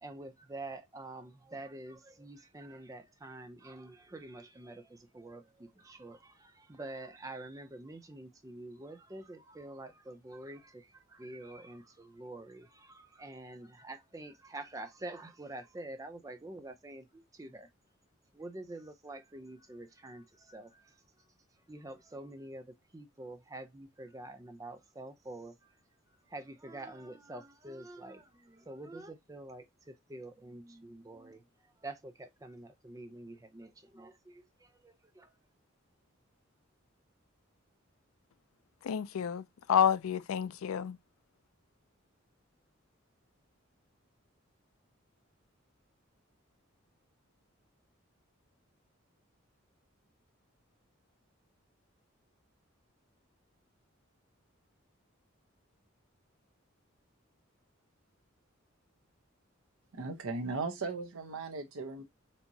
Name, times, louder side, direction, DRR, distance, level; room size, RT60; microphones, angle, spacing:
voice 1, 0.0-17.7 18.3-20.8 21.7-25.7 26.3-31.4 31.8-34.4 34.8-35.3, right 2 dB, 15° right, 0.5 m, -47 dB
voice 2, 38.8-41.0, left 8 dB, 90° left, 0.4 m, -29 dB
voice 3, 59.9-62.0, right 3 dB, 90° right, 0.7 m, -37 dB
4.4 x 2.8 x 2.6 m
head